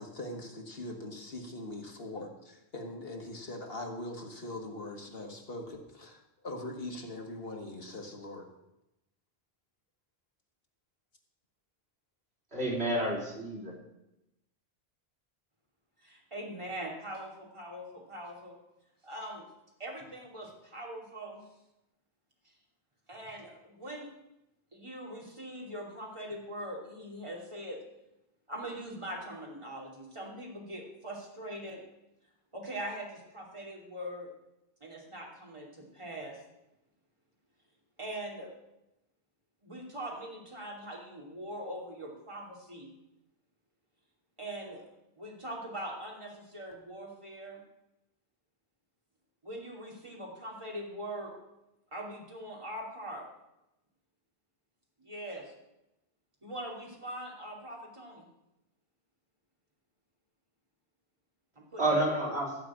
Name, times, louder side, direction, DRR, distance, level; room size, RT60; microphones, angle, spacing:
voice 1, 0.0-8.5, left 1 dB, 65° left, 2 dB, 1.8 m, -41 dB
voice 2, 12.5-13.7 61.8-62.6, right 1 dB, 85° right, -4 dB, 3.9 m, -29 dB
voice 3, 16.0-18.6 19.0-19.5 19.8-21.4 23.1-24.1 24.7-27.8 28.5-31.8 32.5-34.3 34.8-36.4 38.0-38.5 39.6-42.9 44.4-44.8 45.2-47.6 49.4-51.3 51.9-53.2 55.0-55.5 56.4-58.2 61.6-62.0, right 1 dB, 30° right, -2 dB, 2.7 m, -42 dB
14.5 x 5.0 x 8.6 m, 0.92 s
omnidirectional pair, 1.0 m